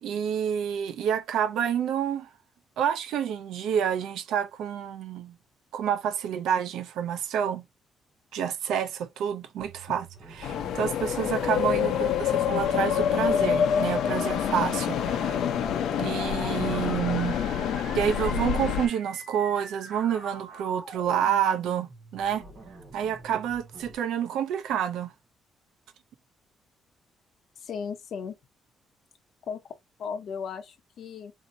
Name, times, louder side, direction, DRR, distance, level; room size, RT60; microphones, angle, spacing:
voice 1, 0.0-2.3 2.8-5.3 5.7-7.6 8.3-10.0 10.3-12.1 12.5-15.4 16.0-17.4 17.9-22.4 22.9-25.1, right 9 dB, 85° right, 0.6 m, -28 dB
sound 1, 9.6-24.0, right 2 dB, 45° right, 1.9 m, -46 dB
sound 2, 10.4-18.9, left 8 dB, 80° left, 0.7 m, -26 dB
voice 2, 27.6-28.3 29.5-29.6 30.0-31.3, left 6 dB, 55° left, 0.9 m, -36 dB
4.1 x 2.8 x 2.7 m
cardioid pair, 160°, 0 cm